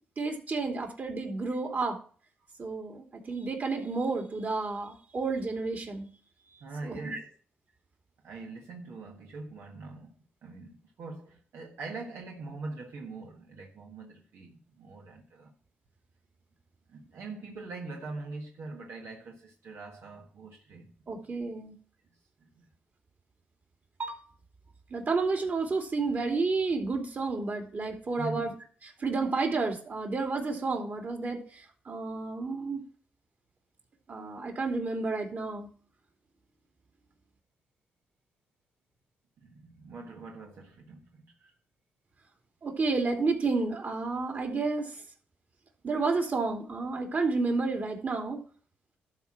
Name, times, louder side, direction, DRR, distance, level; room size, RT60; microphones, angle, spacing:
voice 1, 0.2-2.0 2.6-6.1 6.8-7.2 21.1-21.7 24.0-24.2 24.9-28.5 29.0-32.8 34.1-35.7 42.6-44.9 45.8-48.4, right 3 dB, 45° right, 3.1 m, -31 dB
voice 2, 6.6-7.3 8.2-10.1 10.4-15.5 16.9-20.9 22.4-22.6 28.2-28.5 39.4-41.5, right 3 dB, 75° right, 1.6 m, -43 dB
12.0 x 4.4 x 7.5 m
cardioid pair, 70°, 4 cm